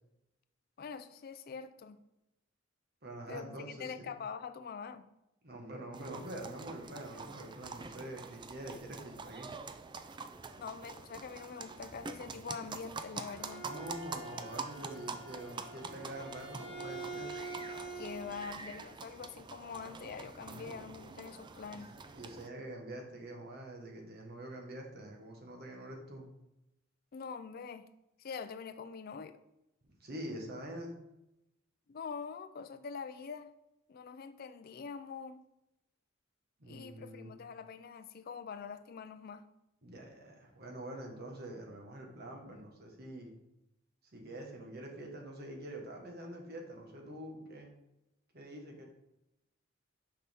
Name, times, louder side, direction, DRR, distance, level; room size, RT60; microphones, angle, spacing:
voice 1, 0.8-2.0 3.3-5.1 10.6-13.7 17.9-21.9 27.1-27.9 28.2-29.4 31.9-33.5 33.9-35.4 36.7-39.5, left 6 dB, 50° left, 0.4 m, -44 dB
voice 2, 3.0-4.1 5.4-9.5 13.6-17.4 20.4-20.8 21.7-26.3 30.0-31.0 36.6-37.3 39.8-43.3 44.1-47.7 48.3-48.8, right 1 dB, 50° right, 1.4 m, -45 dB
sound 1, 5.9-22.5, right 4 dB, 25° right, 0.4 m, -46 dB
Bowed string instrument, 13.2-18.5, right 3 dB, 70° right, 1.6 m, -46 dB
6.4 x 5.4 x 3.5 m
head